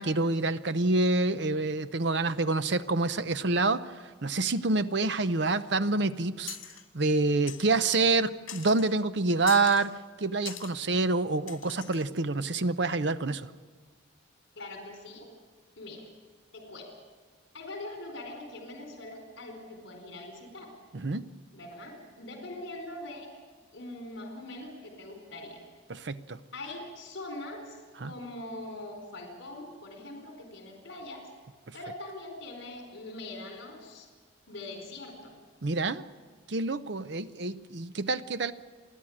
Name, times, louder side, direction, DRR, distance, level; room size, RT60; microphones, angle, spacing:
voice 1, 0.0-6.6 6.9-13.5 20.9-21.3 25.9-26.4 28.0-28.1 35.6-36.0 36.5-38.5, right 3 dB, 60° right, 12 dB, 0.7 m, -27 dB
sound 1, 6.5-6.9 7.5-8.2 8.5-8.9 9.5-9.9 10.5-10.7 11.5-12.1, left 11 dB, 85° left, 2.1 m, -43 dB
voice 2, 14.6-15.3 15.8-16.0 16.5-16.9 17.5-20.8 21.5-23.3 23.7-25.6 26.5-31.2 31.7-34.1 34.5-35.4, left 2 dB, 70° left, 3 dB, 4.4 m, -42 dB
29.5 x 11.5 x 8.7 m, 1.5 s
head